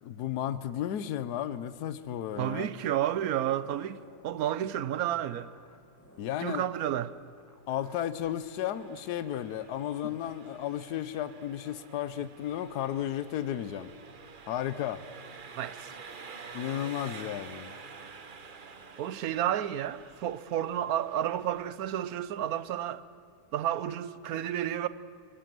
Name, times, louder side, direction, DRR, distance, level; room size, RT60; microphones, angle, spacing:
voice 1, 0.0-2.7 6.2-6.7 7.7-13.9 14.5-15.0 16.5-17.7, left 11 dB, 70° left, 1.3 m, -33 dB
voice 2, 2.4-5.5 6.4-7.1 15.6-15.9 19.0-23.0 23.5-24.9, right 11 dB, 65° right, 1.1 m, -31 dB
sound 1, 3.3-8.4, left 1 dB, 10° left, 1.5 m, -59 dB
Engine, 8.2-22.2, right 5 dB, 35° right, 0.9 m, -49 dB
26.5 x 18.0 x 7.7 m
omnidirectional pair, 1.9 m